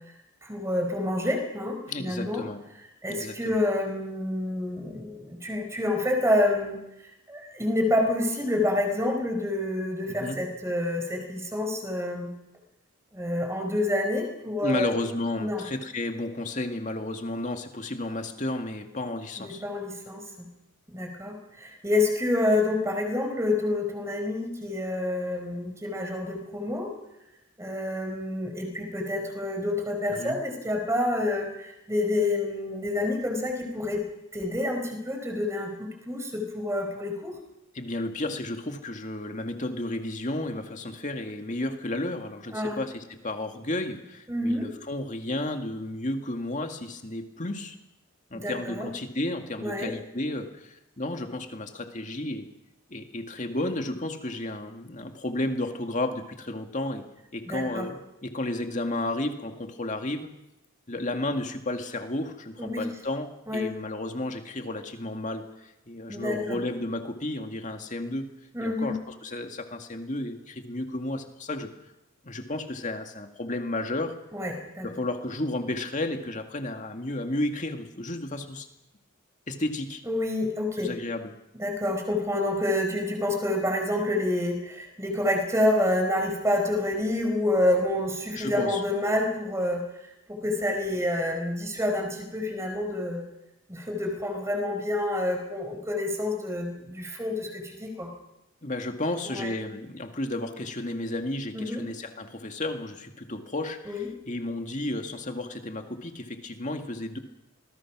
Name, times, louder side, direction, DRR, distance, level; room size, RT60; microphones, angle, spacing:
voice 1, 0.4-2.4 3.0-6.8 7.3-12.3 13.1-15.0 15.4-15.6 19.4-20.2 20.9-26.9 27.6-34.0 34.3-37.4 42.5-42.8 44.3-44.7 48.3-48.9 49.6-49.9 57.5-57.9 62.6-62.8 63.5-63.6 66.1-66.6 68.5-69.0 74.3-74.9 80.1-80.9 81.6-93.2 93.7-98.1 99.2-99.5 101.5-101.8 103.9-104.1, left 1 dB, 15° right, 3 dB, 4.8 m, -28 dB
voice 2, 1.9-2.6 3.1-3.6 10.2-10.4 14.6-19.6 30.1-30.4 37.7-47.8 48.3-52.5 52.9-57.0 57.3-60.3 60.9-68.3 68.6-71.7 72.2-74.1 74.8-78.7 79.5-80.0 80.8-81.3 88.4-88.8 98.6-107.2, left 1 dB, 35° left, 5 dB, 2.1 m, -32 dB
27.0 x 20.5 x 6.2 m, 0.90 s
head